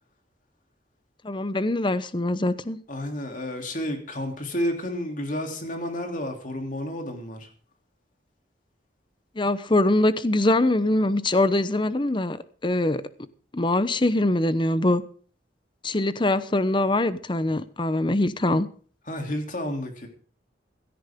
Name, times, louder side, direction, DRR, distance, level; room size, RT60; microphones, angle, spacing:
voice 1, 1.2-2.8 9.4-12.4 12.6-13.0 13.5-15.0 15.8-18.7, left 1 dB, 25° left, 0.8 m, -23 dB
voice 2, 2.9-7.5 19.1-20.1, left 1 dB, 45° left, 3.2 m, -31 dB
16.5 x 13.5 x 3.7 m
head